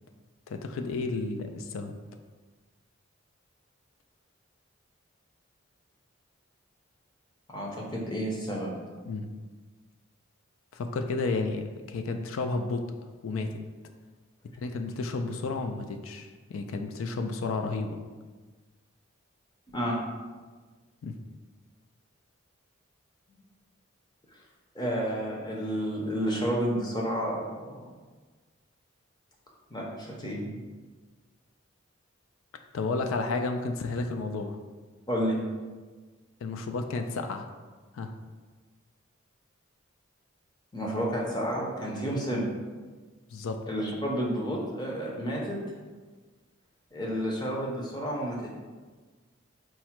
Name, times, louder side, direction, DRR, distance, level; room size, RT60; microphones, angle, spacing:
voice 1, 0.5-2.0 9.1-9.3 10.7-12.9 13.2-13.6 14.6-18.0 21.0-21.2 32.7-34.6 36.4-37.5 37.9-38.1 43.3-43.6, left 3 dB, 75° left, 6 dB, 0.3 m, -32 dB
voice 2, 7.5-8.8 19.7-20.0 24.7-27.4 27.7-27.8 29.7-30.5 35.1-35.4 40.7-42.5 43.7-45.6 46.9-48.5, equal, 20° left, -2 dB, 0.6 m, -30 dB
4.7 x 2.1 x 4.3 m, 1.4 s
head